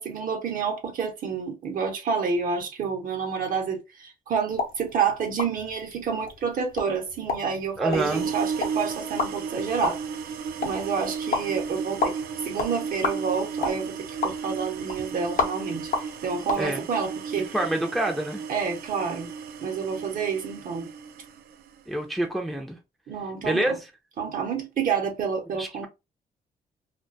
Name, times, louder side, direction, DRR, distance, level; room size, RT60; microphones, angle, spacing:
voice 1, 0.0-10.0 10.6-12.2 12.4-17.6 18.5-19.3 19.6-20.9 23.1-23.8 24.2-25.9, right 6 dB, 65° right, 0.7 m, -29 dB
sound 1, 4.5-16.6, left 4 dB, 65° left, 0.6 m, -33 dB
voice 2, 7.8-8.3 16.6-16.8 17.5-18.4 21.9-22.8 23.4-23.7 25.6-25.9, right 1 dB, ahead, 0.4 m, -27 dB
sound 2, 7.9-21.8, right 6 dB, 85° right, 0.4 m, -34 dB
2.3 x 2.2 x 2.5 m
cardioid pair, 105°, 15 cm